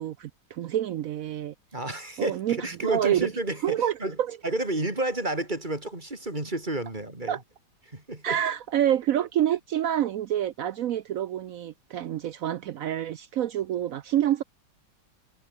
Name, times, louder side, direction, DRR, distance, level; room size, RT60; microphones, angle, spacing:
voice 1, 0.0-1.5 2.2-3.3 3.6-4.3 7.3-7.4 8.2-14.4, right 11 dB, 75° right, 0.7 m, -27 dB
voice 2, 1.7-4.2 4.4-7.4 7.9-8.4, right 2 dB, 25° right, 4.1 m, -31 dB
omnidirectional pair, 2.1 m